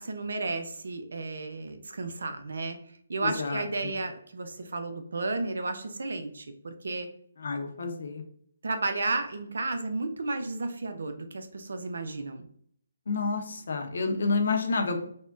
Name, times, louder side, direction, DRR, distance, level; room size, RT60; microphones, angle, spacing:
voice 1, 0.0-2.8 3.1-7.1 8.6-12.5, right 3 dB, 75° right, 7 dB, 0.4 m, -33 dB
voice 2, 3.2-3.9 7.4-8.2 13.1-15.1, left 4 dB, 65° left, 4 dB, 0.6 m, -29 dB
3.4 x 2.2 x 2.5 m, 0.63 s
hypercardioid pair, 150°, 0 cm